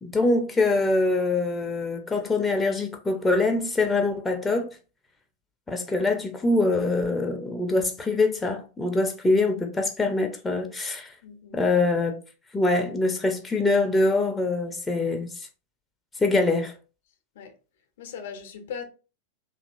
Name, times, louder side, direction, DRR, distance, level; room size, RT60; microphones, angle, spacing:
voice 1, 0.0-4.7 5.7-11.1 11.5-12.2 12.5-15.3 16.2-16.7, left 2 dB, 10° left, 0.5 m, -24 dB
voice 2, 11.2-11.6 17.3-17.5 18.0-18.9, left 7 dB, 60° left, 0.5 m, -38 dB
2.8 x 2.5 x 2.5 m
figure-of-eight pair, 90°, 0 cm